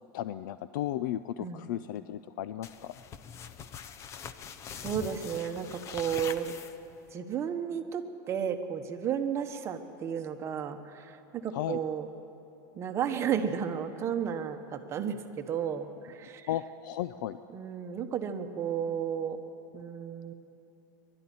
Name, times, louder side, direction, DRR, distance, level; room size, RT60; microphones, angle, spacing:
voice 1, 0.1-3.0 11.5-11.8 16.2-17.4, left 12 dB, 75° left, 14 dB, 0.5 m, -35 dB
sound 1, 2.6-7.1, left 7 dB, 25° left, 0.7 m, -43 dB
voice 2, 4.8-6.5 7.1-12.1 12.7-16.5 17.5-19.4 19.7-20.3, right 8 dB, 25° right, 6 dB, 1.2 m, -33 dB
21.5 x 12.5 x 10.0 m, 3.0 s
supercardioid pair, 155°, 11 cm